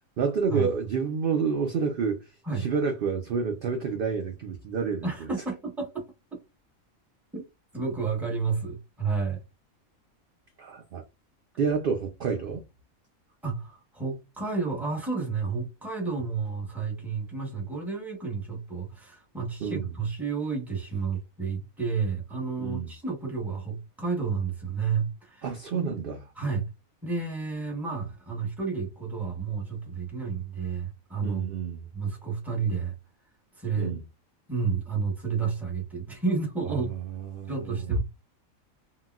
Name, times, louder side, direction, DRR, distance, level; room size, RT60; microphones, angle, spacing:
voice 1, 0.2-5.1 10.6-11.0 11.6-12.6 19.6-19.9 22.6-22.9 25.4-26.2 31.2-31.8 33.8-34.0 36.6-37.8, right 5 dB, 70° right, 0.5 m, -29 dB
voice 2, 5.0-6.0 7.3-7.4 7.7-9.4 13.4-25.9 26.3-26.7 27.0-31.4 31.9-32.9 33.6-33.9 34.5-36.9 37.5-38.0, right 5 dB, ahead, 0.8 m, -31 dB
3.8 x 2.2 x 2.3 m
omnidirectional pair, 1.4 m